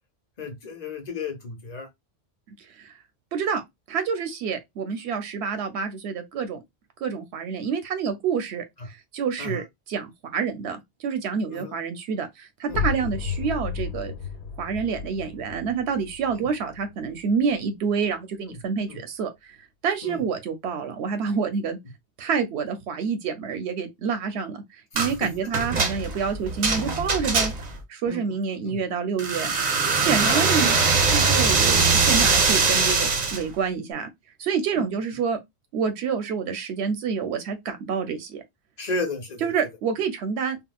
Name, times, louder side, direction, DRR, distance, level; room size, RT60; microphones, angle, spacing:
voice 1, 0.4-1.9 9.4-9.6 11.5-11.7 12.7-12.8 16.3-16.4 18.5-18.6 18.9-19.0 20.0-20.2 25.2-25.3 28.1-28.2 28.6-28.8 30.2-30.6 34.8-34.9 38.8-39.5, left 3 dB, 40° left, 0.9 m, -33 dB
voice 2, 3.3-3.6 3.9-6.6 7.0-14.1 14.6-19.6 19.8-21.8 22.2-24.6 24.9-27.5 27.9-29.5 29.9-30.8 31.1-34.1 34.4-35.4 35.7-38.4 39.4-40.6, right 6 dB, 90° right, 0.9 m, -28 dB
sound 1, 12.7-18.2, left 5 dB, 75° left, 0.9 m, -33 dB
sound 2, 25.0-25.2 25.5-27.8 29.2-33.4, right 4 dB, 45° right, 0.7 m, -22 dB
3.7 x 2.0 x 2.2 m
omnidirectional pair, 1.1 m